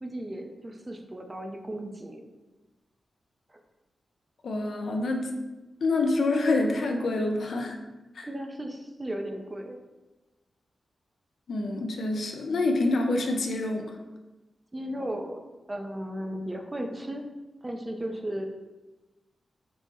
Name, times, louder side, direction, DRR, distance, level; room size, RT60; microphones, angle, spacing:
voice 1, 0.0-2.2 3.5-3.6 8.2-9.8 14.7-15.4 15.7-17.3 17.6-18.5, right 1 dB, 20° right, 4 dB, 0.4 m, -35 dB
voice 2, 4.4-5.3 5.8-7.8 8.1-8.3 11.5-14.0, left 2 dB, 75° left, 3 dB, 0.4 m, -27 dB
3.5 x 2.0 x 4.0 m, 1.1 s
wide cardioid pair, 95°, 0 cm